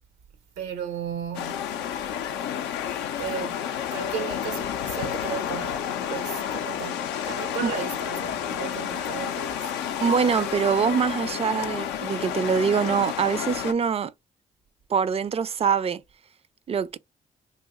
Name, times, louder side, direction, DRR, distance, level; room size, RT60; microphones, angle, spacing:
voice 1, 0.6-1.8 3.2-9.7, right 8 dB, 85° right, 0.7 m, -35 dB
sound 1, 1.3-13.7, left 9 dB, 80° left, 0.4 m, -30 dB
voice 2, 10.0-14.1 14.9-16.0 16.7-17.0, right 6 dB, 35° right, 0.4 m, -24 dB
2.8 x 2.2 x 3.4 m
hypercardioid pair, 45°, 17 cm